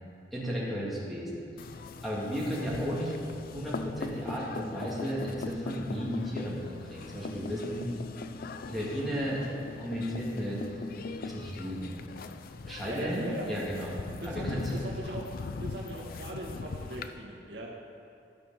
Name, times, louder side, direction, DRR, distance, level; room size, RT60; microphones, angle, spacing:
voice 1, 0.3-1.7 2.0-3.1 3.4-7.9 8.7-9.5 9.8-10.6 11.2-12.0 12.6-14.0 14.3-14.7, equal, ahead, -7 dB, 2.0 m, -34 dB
sound 1, 1.6-17.1, left 3 dB, 55° left, 0.4 m, -40 dB
voice 2, 12.8-13.5 14.2-15.3 15.6-17.7, right 1 dB, 75° right, -3 dB, 1.7 m, -39 dB
12.0 x 6.4 x 5.6 m, 2.5 s
head